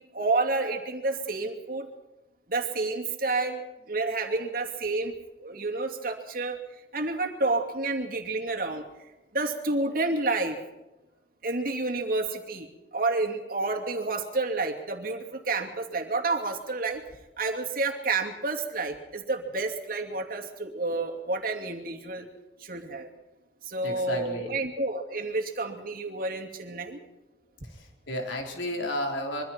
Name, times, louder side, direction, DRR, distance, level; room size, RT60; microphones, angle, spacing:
voice 1, 0.0-1.9 2.5-3.6 3.9-5.1 5.4-6.6 6.9-10.6 11.4-17.0 17.4-22.3 22.6-23.1 23.6-27.0, right 3 dB, 50° right, 2 dB, 2.5 m, -30 dB
voice 2, 23.8-24.5 27.6-29.4, left 1 dB, 90° left, 1 dB, 3.9 m, -33 dB
25.5 x 23.5 x 4.4 m, 1.0 s
head